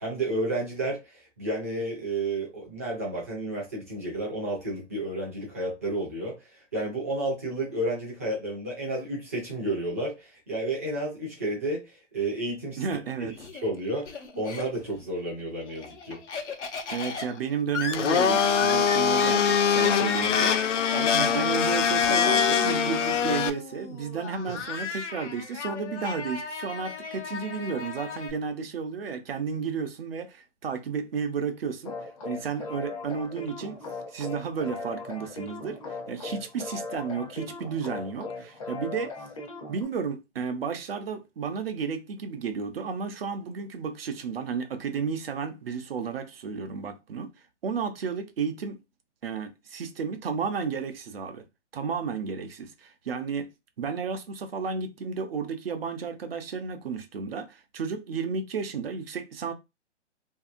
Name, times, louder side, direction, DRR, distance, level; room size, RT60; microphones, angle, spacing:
voice 1, 0.0-12.8 13.2-13.3 13.6-16.2, right 1 dB, 15° right, 0.5 m, -31 dB
voice 2, 12.8-13.4 16.9-39.1 39.7-48.8 49.2-51.4 51.7-53.5 53.8-59.5, right 6 dB, 55° right, 0.7 m, -32 dB
Laughter, 12.9-15.0 15.4-28.3, left 6 dB, 70° left, 0.9 m, -36 dB
Domestic sounds home sounds, 17.9-23.5, left 7 dB, 90° left, 0.6 m, -23 dB
sound 1, 31.8-39.8, left 3 dB, 30° left, 0.6 m, -39 dB
2.7 x 2.7 x 2.5 m
hypercardioid pair, 165°, 36 cm